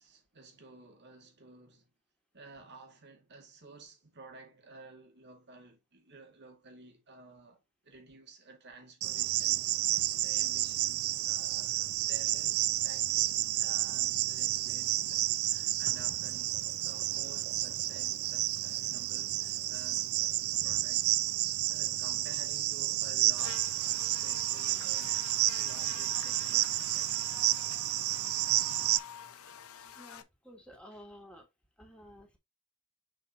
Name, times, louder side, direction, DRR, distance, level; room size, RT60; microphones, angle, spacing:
voice 1, 0.0-1.9 2.3-20.4 20.6-21.1 21.4-27.1, right 3 dB, 50° right, 2.4 m, -53 dB
Cricket, 9.0-29.0, right 15 dB, 70° right, 0.4 m, -31 dB
Buzz, 23.4-30.2, left 8 dB, 70° left, 0.8 m, -48 dB
voice 2, 29.9-31.5 31.8-32.4, equal, 5° left, 2.6 m, -52 dB
6.8 x 5.7 x 2.9 m
head